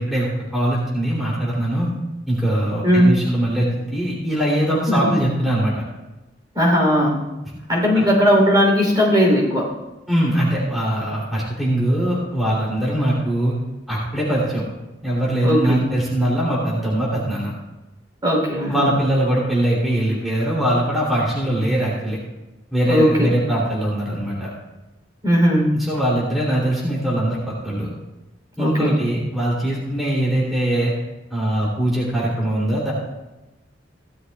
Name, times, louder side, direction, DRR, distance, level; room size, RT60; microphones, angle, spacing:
voice 1, 0.0-1.9 2.3-5.7 7.9-8.0 10.1-13.6 13.9-14.6 15.0-17.5 18.7-22.2 22.7-24.5 25.7-27.9 28.6-30.9 31.3-32.9, right 1 dB, ahead, -7 dB, 3.0 m, -21 dB
voice 2, 2.8-3.1 4.9-5.1 6.5-7.3 7.7-9.7 15.4-15.9 18.2-18.9 22.9-23.3 25.2-25.8 28.6-29.0, equal, 20° right, -2 dB, 3.4 m, -17 dB
16.5 x 12.5 x 2.4 m, 1.0 s
head